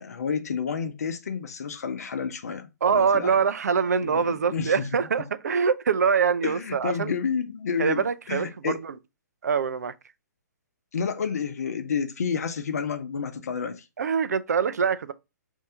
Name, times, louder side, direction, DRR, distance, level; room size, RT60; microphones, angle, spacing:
voice 1, 0.0-3.4 4.0-4.9 6.4-8.8 10.9-13.8, left 6 dB, 60° left, 0.7 m, -30 dB
voice 2, 2.8-7.1 7.8-8.9 9.4-9.9 14.0-15.1, right 6 dB, 65° right, 0.5 m, -24 dB
5.4 x 2.7 x 3.3 m
figure-of-eight pair, 120°, 10 cm